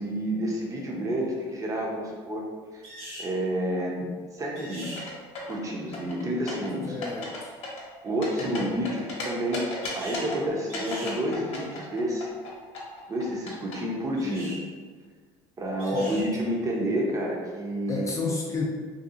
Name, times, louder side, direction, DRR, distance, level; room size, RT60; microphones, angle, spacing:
voice 1, 0.0-2.5 2.7-2.8 3.2-5.1 5.5-7.0 8.0-12.3 13.1-14.6 15.6-18.2, right 1 dB, 25° right, -1 dB, 0.6 m, -29 dB
sound 1, 2.8-3.3 4.6-5.0 9.8-10.3 10.7-11.2 14.2-14.6 15.8-16.3, right 1 dB, 70° right, 1.3 m, -41 dB
sound 2, 4.8-5.6 5.9-6.7 7.0-7.4 7.6-9.2 9.5-10.4 10.7-13.8, left 3 dB, 55° left, 0.8 m, -35 dB
voice 2, 6.8-7.5 8.4-8.8 15.9-16.2 17.9-18.7, left 4 dB, 25° left, -2 dB, 0.3 m, -32 dB
2.7 x 2.3 x 2.4 m, 1.5 s
supercardioid pair, 105°, 13 cm